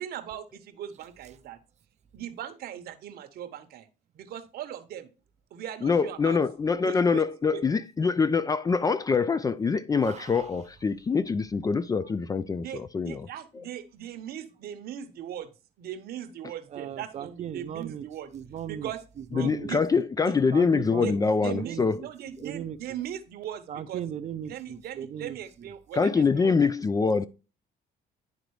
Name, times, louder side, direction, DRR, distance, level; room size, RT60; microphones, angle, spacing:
voice 1, 0.0-1.6 2.1-3.9 4.1-5.1 5.5-6.4 6.8-7.6 12.6-15.5 15.8-18.3 18.7-19.0 19.3-19.8 20.2-20.4 21.0-21.1 21.4-24.0 24.5-26.8, right 10 dB, 65° right, 0.9 m, -39 dB
voice 2, 5.8-13.3 13.6-13.7 19.4-22.0 25.9-27.3, left 5 dB, 20° left, 0.3 m, -25 dB
voice 3, 10.0-10.5 16.7-18.1 18.3-18.9 19.3-19.7 20.5-21.2 21.5-22.8 23.7-25.7, right 9 dB, 40° right, 0.5 m, -38 dB
10.5 x 3.9 x 3.1 m
cardioid pair, 110°, 17 cm